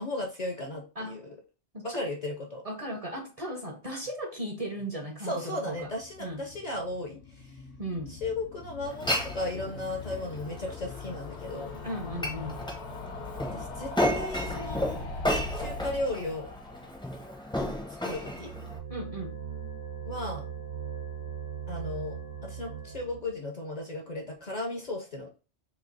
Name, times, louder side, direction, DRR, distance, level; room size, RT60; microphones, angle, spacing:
voice 1, 0.0-1.3 1.8-2.6 5.2-7.5 8.1-11.8 13.5-14.9 15.5-16.5 18.0-18.5 20.0-20.5 21.7-22.2 22.4-25.3, left 2 dB, 45° left, 2 dB, 0.6 m, -35 dB
voice 2, 1.7-2.1 2.6-5.9 6.2-6.4 7.8-8.2 11.8-12.6 18.9-19.3, right 1 dB, 40° right, 2 dB, 0.7 m, -36 dB
sound 1, 5.6-18.7 19.0-19.1 19.3-19.4 19.6-19.7, left 3 dB, 75° left, 1.1 m, -41 dB
Glass, 8.8-18.8, equal, 5° left, 0.5 m, -34 dB
sound 2, 18.2-23.4, right 7 dB, 90° right, 1.2 m, -39 dB
3.1 x 2.8 x 3.8 m, 0.34 s
omnidirectional pair, 1.1 m